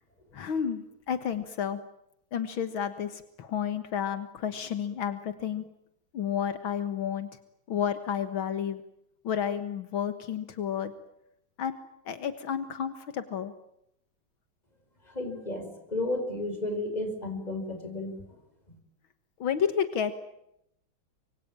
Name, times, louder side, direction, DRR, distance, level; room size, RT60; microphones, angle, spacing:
voice 1, 0.3-1.8 2.3-5.7 6.1-7.4 7.7-8.8 9.2-10.9 11.6-11.8 12.1-13.5 19.4-20.2, left 8 dB, 80° left, 11 dB, 2.3 m, -31 dB
voice 2, 15.1-18.4, left 2 dB, 20° left, 7 dB, 5.3 m, -33 dB
26.0 x 24.0 x 8.9 m, 0.80 s
omnidirectional pair, 2.2 m